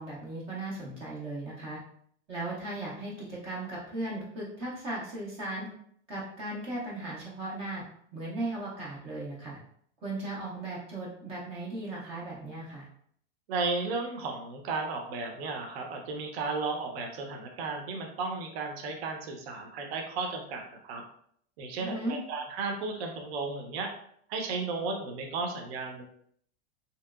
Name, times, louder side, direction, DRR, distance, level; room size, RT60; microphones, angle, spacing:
voice 1, 0.0-1.8 2.3-5.7 6.1-7.8 8.1-9.6 10.0-12.9 21.8-22.2, right 2 dB, 20° right, -4 dB, 0.3 m, -37 dB
voice 2, 13.5-21.0 21.6-23.9 24.3-26.0, right 3 dB, 60° right, 3 dB, 0.6 m, -34 dB
2.9 x 2.8 x 2.3 m, 0.64 s
supercardioid pair, 160°, 35 cm